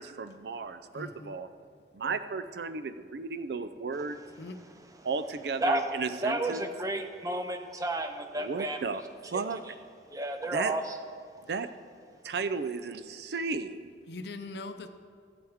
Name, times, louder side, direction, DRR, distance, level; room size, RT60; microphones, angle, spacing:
voice 1, 0.0-1.5 1.9-4.2 5.0-6.7 8.4-9.6 10.5-10.7 11.5-11.7 12.2-13.9, right 4 dB, 70° right, 11 dB, 0.4 m, -34 dB
voice 2, 0.9-1.4 4.4-4.6 11.5-11.6 14.1-14.9, left 2 dB, 70° left, 9 dB, 0.6 m, -41 dB
voice 3, 6.2-8.8 9.7-9.8 10.1-10.8, right 1 dB, 20° right, 6 dB, 0.6 m, -31 dB
14.5 x 7.8 x 3.6 m, 2.1 s
head